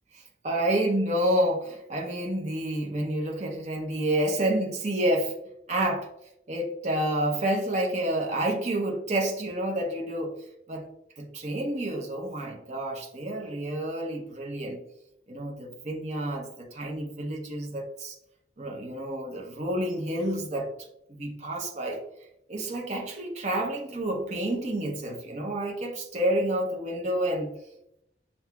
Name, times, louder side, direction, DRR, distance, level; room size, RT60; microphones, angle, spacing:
voice 1, 0.4-5.3 5.7-6.1 6.5-10.3 10.7-10.9 11.2-14.8 15.3-18.2 18.6-20.7 21.1-22.0 22.5-27.5, right 1 dB, 40° right, 0 dB, 0.7 m, -29 dB
7.2 x 2.7 x 2.3 m, 0.80 s
head